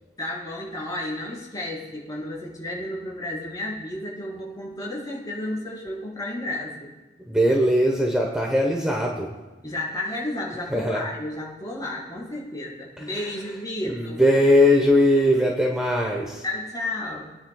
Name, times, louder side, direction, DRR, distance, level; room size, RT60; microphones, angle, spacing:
voice 1, 0.2-6.9 9.6-14.2 16.4-17.3, left 1 dB, 20° left, -6 dB, 4.8 m, -32 dB
voice 2, 7.2-9.3 10.7-11.0 13.0-13.4 13.8-16.4, left 1 dB, 5° right, -1 dB, 1.1 m, -20 dB
27.0 x 10.0 x 2.4 m, 1.2 s
head